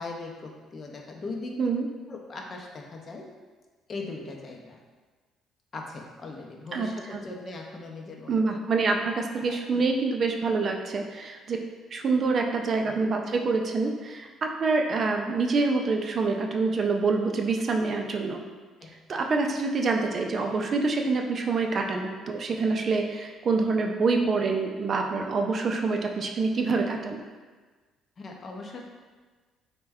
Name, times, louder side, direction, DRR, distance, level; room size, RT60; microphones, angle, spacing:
voice 1, 0.0-1.6 2.1-3.3 3.9-4.8 5.7-8.5 9.3-9.8 18.8-19.0 28.2-28.8, left 3 dB, 40° left, 0 dB, 0.5 m, -39 dB
voice 2, 6.7-7.2 8.3-11.6 11.9-18.4 19.1-27.2, right 4 dB, 45° right, 2 dB, 0.3 m, -26 dB
3.3 x 2.1 x 3.4 m, 1.4 s
cardioid pair, 90°, 0 cm